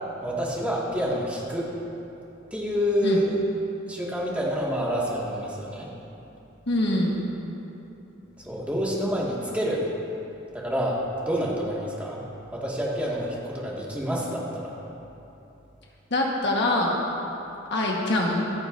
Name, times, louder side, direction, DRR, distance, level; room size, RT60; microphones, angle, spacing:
voice 1, 0.2-1.7 2.5-3.4 3.9-5.9 8.4-9.9 10.5-12.2 12.5-14.7, equal, 5° right, -5 dB, 1.9 m, -28 dB
voice 2, 6.7-7.3 16.1-17.0 17.7-18.4, left 1 dB, 60° left, -1 dB, 1.3 m, -24 dB
26.0 x 8.8 x 2.6 m, 3.0 s
head